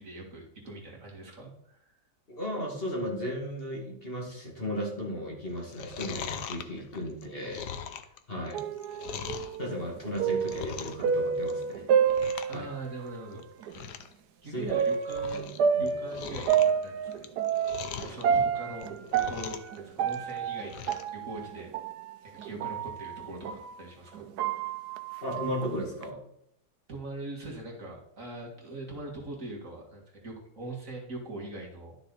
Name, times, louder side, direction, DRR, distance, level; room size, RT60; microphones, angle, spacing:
voice 1, 0.0-1.9 12.5-13.5 13.7-13.9 14.4-17.3 18.0-21.7 22.2-24.7 26.9-32.0, right 2 dB, 50° right, -2 dB, 2.4 m, -42 dB
voice 2, 2.3-7.7 8.3-8.6 9.6-11.8 12.5-12.7 14.5-14.8 15.8-15.9 25.2-26.2, equal, 35° left, -2 dB, 2.4 m, -35 dB
Chewing mastication, 5.6-9.6 10.0-11.1 11.4-11.7 12.0-12.6 12.9-13.0 13.4-13.5 13.7-14.1 14.5-15.6 15.9-18.2 18.7-19.8 20.0-21.1 21.5-21.6, left 8 dB, 85° left, 1.4 m, -40 dB
sound 1, 8.5-13.1 13.6-13.7 14.7-23.7 24.1-26.0, right 7 dB, 80° right, 1.3 m, -29 dB
11.5 x 6.5 x 4.1 m, 0.76 s
omnidirectional pair, 1.8 m